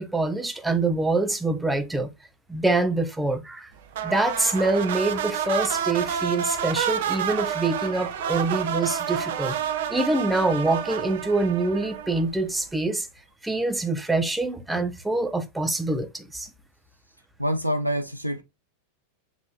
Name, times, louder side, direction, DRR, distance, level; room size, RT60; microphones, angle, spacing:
voice 1, 0.0-2.1 2.5-3.7 4.0-9.6 9.9-13.1 13.4-16.5, right 2 dB, 5° right, 0.8 m, -25 dB
sound 1, 3.9-12.4, right 8 dB, 55° right, 0.7 m, -29 dB
voice 2, 17.4-18.4, equal, 90° left, 0.5 m, -26 dB
7.3 x 3.0 x 2.4 m
figure-of-eight pair, 90°, 0 cm